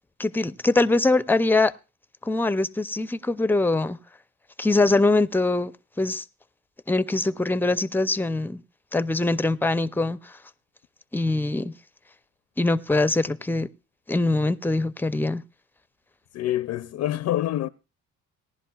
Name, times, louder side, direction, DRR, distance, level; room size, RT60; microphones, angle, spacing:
voice 1, 0.2-1.7 2.2-4.0 4.6-5.7 6.0-6.2 6.9-8.6 8.9-10.3 11.1-11.7 12.6-13.7 14.1-15.4, left 2 dB, 5° left, 0.5 m, -23 dB
voice 2, 16.3-17.7, left 13 dB, 65° left, 0.5 m, -26 dB
18.5 x 11.0 x 2.3 m
cardioid pair, 90°, 30 cm